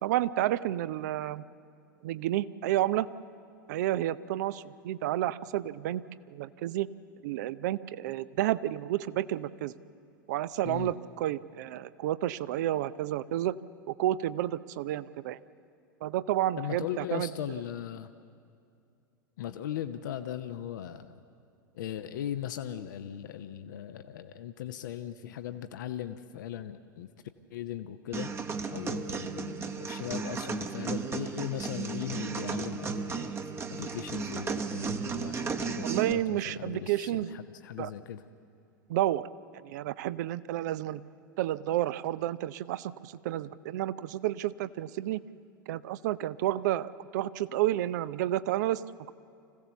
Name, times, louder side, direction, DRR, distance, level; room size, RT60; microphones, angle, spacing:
voice 1, 0.0-1.4 2.0-3.1 3.7-6.0 6.3-6.9 7.2-9.7 10.3-13.6 13.9-15.4 16.0-17.3 35.8-37.3 37.8-37.9 38.9-39.3 39.6-41.0 41.4-45.2 45.7-49.1, right 13 dB, 55° right, 17 dB, 0.6 m, -30 dB
voice 2, 16.6-18.1 19.4-21.1 21.7-27.1 27.5-28.3 28.7-33.3 33.7-38.2, left 10 dB, 65° left, 9 dB, 0.8 m, -38 dB
sound 1, 28.1-36.1, right 5 dB, 25° right, 1.1 m, -34 dB
25.5 x 16.0 x 7.0 m, 2.4 s
figure-of-eight pair, 85°, 11 cm